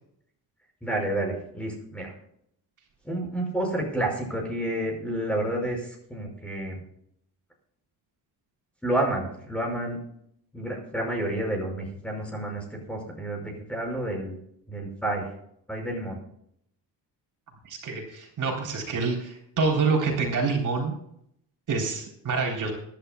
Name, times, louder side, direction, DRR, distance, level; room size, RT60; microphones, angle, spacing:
voice 1, 0.8-2.1 3.0-6.8 8.8-10.0 10.5-14.4 14.7-15.3 15.7-16.2, right 1 dB, 5° left, 0 dB, 5.6 m, -30 dB
voice 2, 17.6-20.9 21.7-22.7, right 4 dB, 50° right, 0 dB, 3.7 m, -27 dB
25.0 x 11.5 x 2.3 m, 0.71 s
cardioid pair, 165°, 39 cm